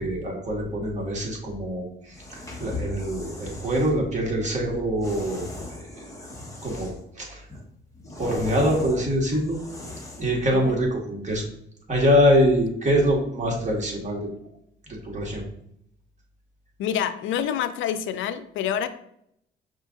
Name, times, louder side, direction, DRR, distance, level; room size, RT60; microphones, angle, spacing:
voice 1, 0.0-6.1 6.6-6.9 7.2-7.4 8.2-9.6 10.2-11.5 11.9-14.3 15.0-15.4, equal, 35° right, -1 dB, 1.7 m, -24 dB
sound 1, 2.1-3.9 5.0-7.1 7.5-10.4, left 2 dB, 15° left, 1.2 m, -38 dB
voice 2, 10.5-10.8 16.8-18.9, left 9 dB, 80° left, 12 dB, 0.4 m, -27 dB
5.5 x 2.5 x 3.7 m, 0.72 s
cardioid pair, 90°, 20 cm